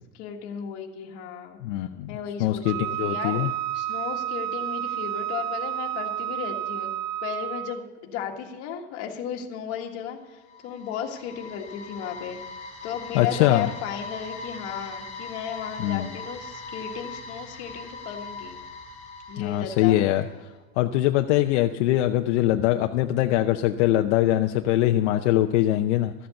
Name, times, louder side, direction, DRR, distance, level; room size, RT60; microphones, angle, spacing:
voice 1, 0.1-1.6 2.1-3.4 3.7-6.9 7.2-12.4 12.8-18.6 19.3-20.3, left 8 dB, 45° left, 2 dB, 1.7 m, -35 dB
voice 2, 1.6-2.1 2.4-3.5 13.1-13.7 15.8-16.1 19.4-20.3 20.8-26.1, left 14 dB, 75° left, 6 dB, 0.7 m, -22 dB
Wind instrument woodwind instrument, 2.6-7.9, right 12 dB, 60° right, 0.6 m, -31 dB
sound 1, 10.2-20.3, left 3 dB, 20° left, 2.8 m, -40 dB
14.0 x 7.8 x 7.0 m, 1.3 s
cardioid pair, 180°, 35 cm